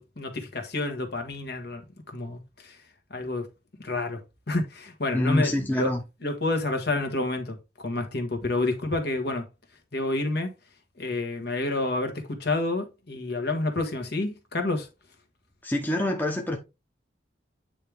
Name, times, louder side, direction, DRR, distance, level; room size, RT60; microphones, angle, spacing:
voice 1, 0.2-1.8 2.1-2.8 3.1-3.5 3.8-4.2 4.5-5.9 6.2-7.6 7.8-9.4 9.9-10.5 11.0-14.9, left 2 dB, 55° left, 1.5 m, -29 dB
voice 2, 5.1-6.0 15.6-16.6, left 1 dB, 10° left, 0.9 m, -26 dB
8.9 x 3.5 x 3.4 m
head